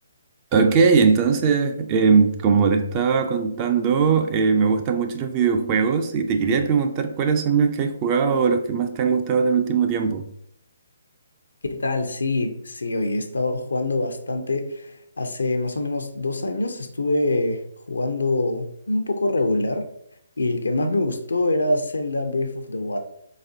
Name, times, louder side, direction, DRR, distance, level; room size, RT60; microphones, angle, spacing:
voice 1, 0.5-10.3, right 5 dB, 30° right, 0.4 m, -20 dB
voice 2, 11.7-19.9 20.4-23.0, left 2 dB, 85° left, 0.5 m, -25 dB
4.2 x 4.1 x 2.6 m
figure-of-eight pair, 145°, 0 cm